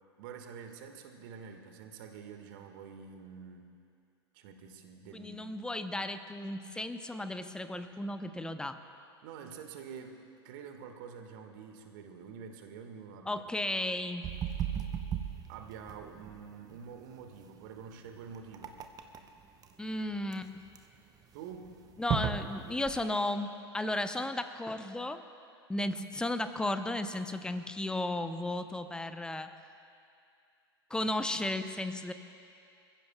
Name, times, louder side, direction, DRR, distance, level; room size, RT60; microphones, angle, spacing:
voice 1, 0.2-3.7 4.3-5.5 9.2-13.9 15.5-18.8 21.3-21.8, right 6 dB, 50° right, 5 dB, 1.7 m, -47 dB
voice 2, 5.1-8.8 13.3-14.3 19.8-20.6 22.0-25.2 25.7-29.5 30.9-32.1, left 1 dB, 5° left, 9 dB, 0.8 m, -34 dB
sound 1, 14.2-23.0, right 8 dB, 25° right, 0.9 m, -37 dB
27.5 x 15.0 x 2.3 m, 2.5 s
figure-of-eight pair, 90°, 14 cm